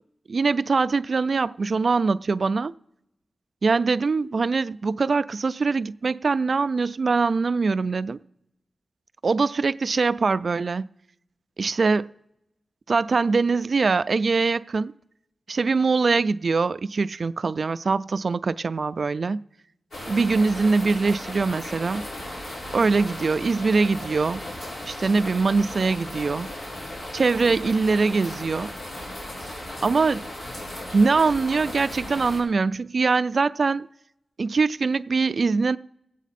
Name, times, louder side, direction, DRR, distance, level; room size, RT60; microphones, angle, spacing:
voice 1, 0.3-2.7 3.6-8.2 9.2-10.9 11.6-12.1 12.9-14.9 15.5-19.4 20.1-22.0 22.7-24.4 24.9-26.5 27.1-28.7 29.8-30.3 30.9-33.9 34.4-35.8, right 4 dB, 55° right, 0.3 m, -23 dB
sound 1, 19.9-32.4, left 1 dB, 75° left, 4.9 m, -36 dB
19.5 x 8.2 x 4.2 m
wide cardioid pair, 95°, 0 cm